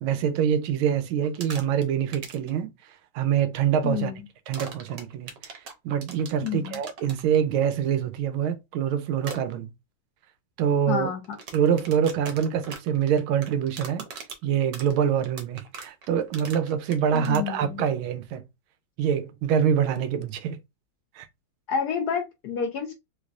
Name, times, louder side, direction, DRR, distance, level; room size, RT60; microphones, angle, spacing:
voice 1, 0.0-2.7 3.1-4.1 4.5-9.7 10.6-11.1 11.5-14.0 14.4-18.4 19.0-20.6 21.2-21.3, right 8 dB, 90° right, 1.5 m, -25 dB
sound 1, 1.2-1.8 2.1-2.5 4.5-7.2 9.2-9.4 11.2-17.4, right 5 dB, 65° right, 1.4 m, -40 dB
voice 2, 3.8-4.2 6.4-6.8 10.9-11.2 17.1-17.8 21.7-22.9, left 7 dB, 65° left, 1.1 m, -29 dB
3.5 x 3.2 x 2.5 m
omnidirectional pair, 2.2 m